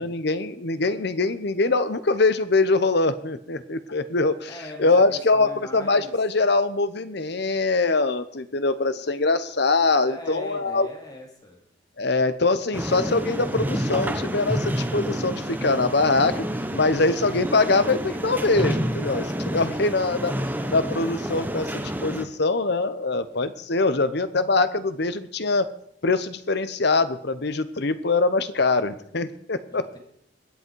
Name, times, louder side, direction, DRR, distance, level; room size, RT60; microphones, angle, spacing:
voice 1, 0.0-4.5 4.8-10.9 12.0-20.3 20.7-25.7 26.0-30.0, left 3 dB, 60° left, 12 dB, 1.0 m, -23 dB
voice 2, 4.5-6.1 10.1-11.6 29.7-30.0, left 1 dB, 20° left, 1 dB, 2.7 m, -41 dB
sound 1, 12.7-22.2, equal, 10° right, 1.2 m, -29 dB
22.5 x 8.5 x 4.7 m, 0.68 s
head